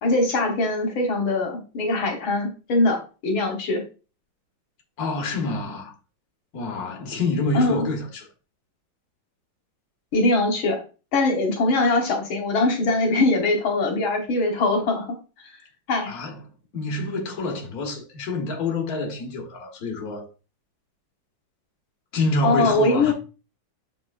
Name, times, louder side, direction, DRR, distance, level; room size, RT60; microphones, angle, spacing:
voice 1, 0.0-3.8 7.5-7.9 10.1-10.8 11.1-15.2 15.9-16.2 22.4-23.1, left 2 dB, 85° left, 2.2 m, -22 dB
voice 2, 5.0-5.9 6.5-8.3 16.1-16.4 16.7-20.3 22.1-23.1, left 2 dB, 50° left, 1.9 m, -27 dB
6.6 x 6.1 x 2.5 m
omnidirectional pair, 2.2 m